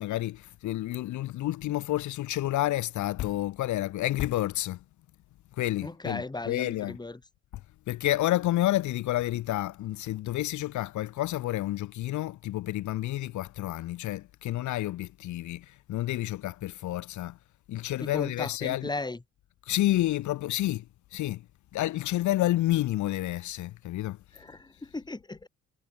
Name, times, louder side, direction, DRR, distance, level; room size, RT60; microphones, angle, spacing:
voice 1, 0.0-4.8 5.6-7.0 7.9-17.4 17.7-18.9 19.7-20.8 21.1-21.4 21.7-24.2, left 15 dB, 70° left, 0.7 m, -29 dB
voice 2, 5.8-7.2 18.0-19.2 24.3-25.5, left 2 dB, 15° left, 1.8 m, -36 dB
cardioid pair, 90°, 30 cm